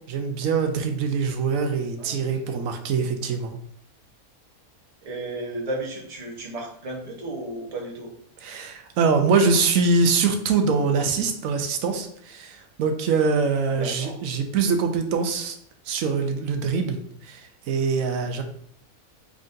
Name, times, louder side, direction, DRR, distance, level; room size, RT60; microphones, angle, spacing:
voice 1, 0.1-3.6 8.4-15.6 15.9-18.4, right 4 dB, 70° right, 6 dB, 0.9 m, -24 dB
voice 2, 2.0-2.7 5.0-8.1 13.7-14.2, right 2 dB, 30° right, -1 dB, 0.8 m, -34 dB
3.9 x 3.6 x 2.5 m, 0.65 s
omnidirectional pair, 1.5 m